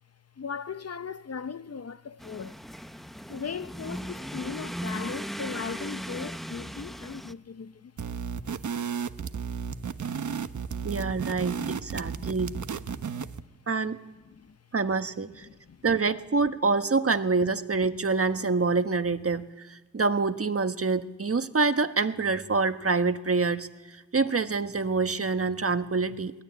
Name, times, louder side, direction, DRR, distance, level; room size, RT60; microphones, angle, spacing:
voice 1, 0.4-2.6 3.3-7.9 11.3-13.1 14.2-14.6 15.4-15.8, left 6 dB, 50° left, 0.8 m, -39 dB
sound 1, 2.2-7.3, equal, ahead, 0.9 m, -37 dB
sound 2, 8.0-13.4, right 6 dB, 65° right, 1.1 m, -33 dB
voice 2, 10.8-12.5 13.7-14.0 14.7-15.5 15.8-23.7 24.1-26.4, right 4 dB, 45° right, 1.5 m, -26 dB
21.5 x 20.5 x 9.8 m
cardioid pair, 65°, 32 cm